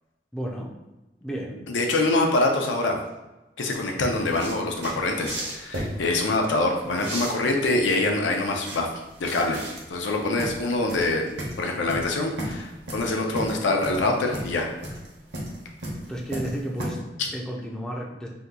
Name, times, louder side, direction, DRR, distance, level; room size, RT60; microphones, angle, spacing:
voice 1, 0.3-0.7 1.2-1.6 16.0-17.0 17.3-18.3, right 1 dB, 5° left, -2 dB, 0.3 m, -32 dB
voice 2, 1.7-3.0 3.6-8.9 9.2-9.6 9.9-11.2 11.6-14.7 17.2-17.3, left 2 dB, 90° left, 2 dB, 0.5 m, -24 dB
sound 1, 3.7-16.9, right 1 dB, 70° right, 0.9 m, -35 dB
2.8 x 2.3 x 3.6 m, 1.0 s
head